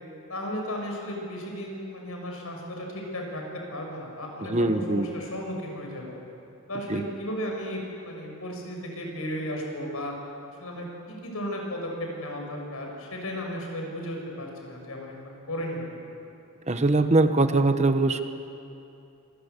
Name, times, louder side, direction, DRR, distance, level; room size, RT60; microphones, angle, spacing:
voice 1, 0.3-3.4 3.7-6.2 6.7-10.1 10.6-16.0, equal, 85° left, 1 dB, 6.6 m, -35 dB
voice 2, 4.4-5.1 6.9-7.0 16.7-18.2, right 2 dB, 30° right, 8 dB, 1.0 m, -22 dB
26.5 x 21.5 x 8.3 m, 2.7 s
head